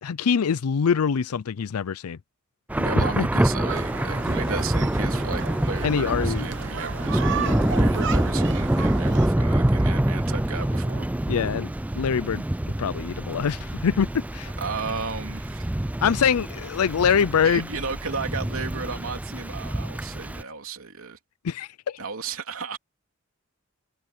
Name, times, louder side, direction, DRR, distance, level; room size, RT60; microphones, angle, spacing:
voice 1, 0.0-2.2 2.9-3.3 5.8-6.5 7.4-7.7 11.3-14.5 16.0-17.7 21.4-22.0, left 7 dB, 85° left, 0.5 m, -24 dB
Thunder / Rain, 2.7-20.4, right 1 dB, 5° right, 0.3 m, -26 dB
voice 2, 2.7-11.1 14.6-15.7 17.4-21.2 22.0-22.8, right 4 dB, 70° right, 3.1 m, -34 dB
sound 1, 3.7-9.3, right 5 dB, 55° right, 1.1 m, -34 dB
head